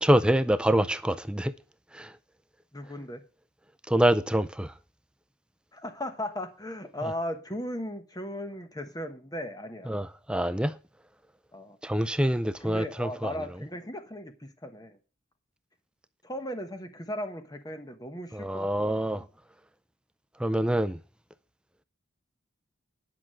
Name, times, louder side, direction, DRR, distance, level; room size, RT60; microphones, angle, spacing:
voice 1, 0.0-1.5 1.9-2.1 3.9-4.7 9.9-10.7 11.8-13.3 18.3-19.2 20.4-21.0, right 1 dB, 5° right, 0.4 m, -25 dB
voice 2, 2.7-3.2 5.7-9.9 11.5-11.8 12.6-15.0 16.2-19.3, equal, 20° left, 1.2 m, -37 dB
10.0 x 6.0 x 6.2 m
head